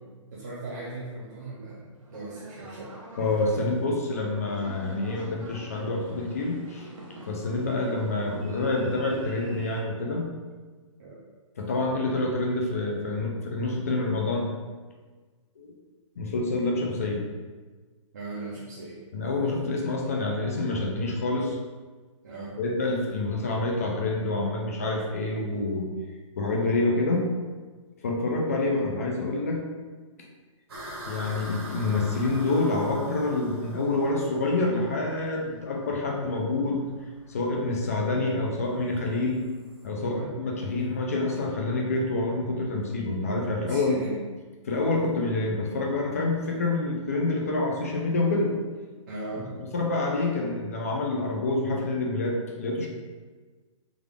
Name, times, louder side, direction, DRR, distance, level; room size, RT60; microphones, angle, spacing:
voice 1, 0.3-2.9 11.0-11.2 18.1-19.0 22.2-22.5 39.9-40.3 43.7-44.2 49.1-49.5, right 2 dB, 35° right, -8 dB, 0.5 m, -38 dB
sound 1, 1.9-9.8, right 1 dB, 90° right, 0.9 m, -45 dB
voice 2, 3.2-6.9 7.3-10.3 11.6-14.5 15.6-15.7 16.2-17.2 19.1-21.6 22.6-25.9 26.4-27.3 28.0-29.6 31.1-36.9 37.3-39.4 39.8-44.0 44.7-48.5 49.7-52.9, left 2 dB, 30° left, 0 dB, 0.4 m, -27 dB
sound 2, 30.7-39.9, equal, 50° right, 1.0 m, -43 dB
3.4 x 2.4 x 3.4 m, 1.4 s
hypercardioid pair, 180°, 17 cm